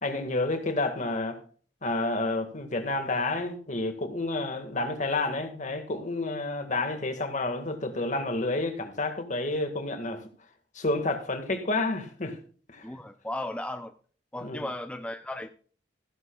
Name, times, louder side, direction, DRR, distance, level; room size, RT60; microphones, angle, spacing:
voice 1, 0.0-1.4 1.8-10.2 10.7-12.4 12.7-12.9 14.4-14.7, left 2 dB, 45° left, 1.9 m, -30 dB
voice 2, 12.8-13.9 14.3-15.5, left 1 dB, 5° left, 0.5 m, -35 dB
15.0 x 12.5 x 2.4 m
head